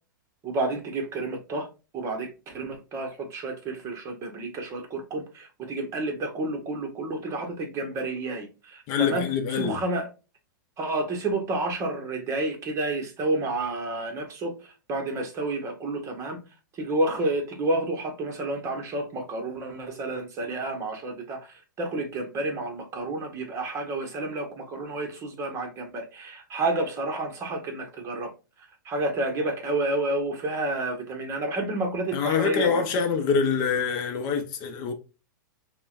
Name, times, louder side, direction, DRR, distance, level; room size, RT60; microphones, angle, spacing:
voice 1, 0.4-1.7 1.9-9.3 9.5-10.1 10.8-16.4 16.7-28.3 28.8-32.8, right 2 dB, 25° right, 1.0 m, -30 dB
voice 2, 8.9-9.8 32.1-34.9, left 6 dB, 40° left, 0.7 m, -25 dB
5.4 x 2.2 x 2.4 m
hypercardioid pair, 130°, 11 cm